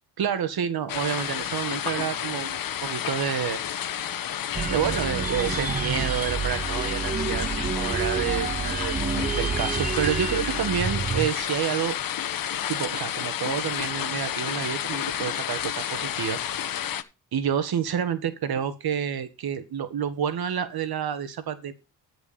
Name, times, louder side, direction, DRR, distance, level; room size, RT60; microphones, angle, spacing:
voice 1, 0.2-3.6 4.7-9.0 9.4-12.0 12.7-16.4 17.3-21.7, right 8 dB, 60° right, 11 dB, 1.8 m, -29 dB
sound 1, 0.9-17.0, left 10 dB, 55° left, 1.1 m, -31 dB
sound 2, 4.5-11.3, right 6 dB, 20° right, 0.6 m, -29 dB
13.5 x 5.0 x 5.2 m, 0.27 s
cardioid pair, 75°, 42 cm